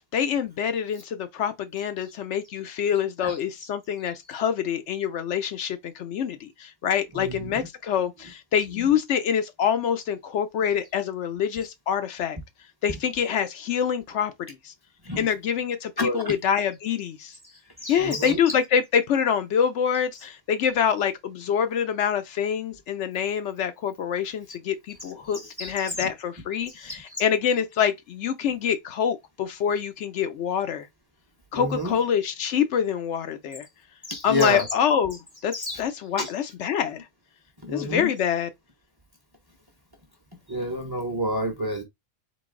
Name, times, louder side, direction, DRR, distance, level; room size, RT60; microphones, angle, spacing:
voice 1, 0.0-12.4 12.8-14.7 15.2-17.4 17.9-30.9 31.5-33.7 34.2-37.0 37.7-38.5, left 8 dB, 70° left, 0.9 m, -26 dB
voice 2, 7.1-7.7 8.7-8.9 15.0-15.3 16.0-16.3 17.8-18.4 25.4-26.1 26.8-27.2 31.5-31.9 34.1-34.7 35.5-35.8 36.2-36.3 37.6-38.1 40.5-41.8, left 1 dB, 25° right, 0.7 m, -29 dB
3.9 x 2.6 x 3.7 m
omnidirectional pair, 1.3 m